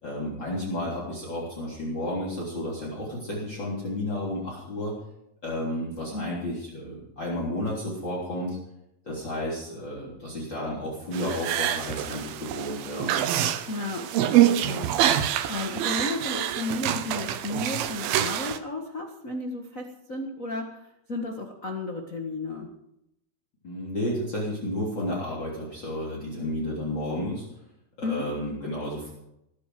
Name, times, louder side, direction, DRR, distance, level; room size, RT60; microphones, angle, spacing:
voice 1, 0.0-4.9 5.4-8.6 9.0-13.1 23.6-27.5 28.0-29.1, left 1 dB, 30° left, -6 dB, 4.0 m, -32 dB
sound 1, 11.1-18.6, right 11 dB, 75° right, 2.7 m, -26 dB
voice 2, 13.7-14.1 14.4-14.9 15.5-20.8 21.1-22.7 28.0-28.2, left 2 dB, 80° left, 2 dB, 0.7 m, -33 dB
20.0 x 9.9 x 6.1 m, 0.83 s
omnidirectional pair, 4.5 m